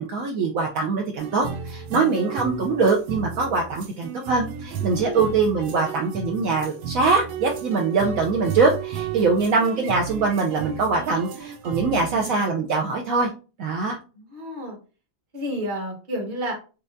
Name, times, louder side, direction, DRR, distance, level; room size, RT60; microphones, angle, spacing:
voice 1, 0.0-13.3 13.6-14.0, right 4 dB, 75° right, 1 dB, 0.8 m, -23 dB
sound 1, 1.2-12.5, right 7 dB, 90° right, 1.4 m, -34 dB
voice 2, 5.0-5.3 14.1-14.8 15.3-16.5, equal, 30° right, 1 dB, 1.1 m, -30 dB
4.3 x 3.5 x 2.6 m, 0.34 s
omnidirectional pair, 2.1 m